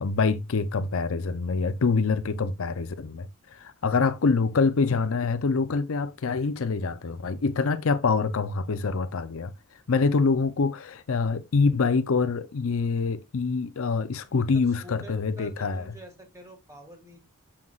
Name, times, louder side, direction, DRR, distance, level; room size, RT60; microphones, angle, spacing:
voice 1, 0.0-9.5 9.9-15.8, left 4 dB, 65° left, 0.5 m, -25 dB
voice 2, 14.2-17.2, equal, 15° right, 1.7 m, -48 dB
7.5 x 5.8 x 2.4 m
head